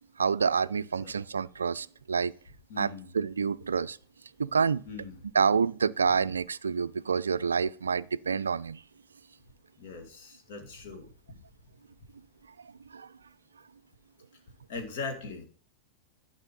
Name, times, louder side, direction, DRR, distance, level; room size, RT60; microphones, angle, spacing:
voice 1, 0.2-2.3 2.8-4.0 4.4-4.8 5.3-8.8 12.9-13.1, right 5 dB, 70° right, 0.3 m, -28 dB
voice 2, 2.7-3.1 4.9-5.2 9.8-11.4 14.7-15.4, left 4 dB, 55° left, 2.3 m, -40 dB
11.0 x 5.5 x 5.4 m
figure-of-eight pair, 90°, 0 cm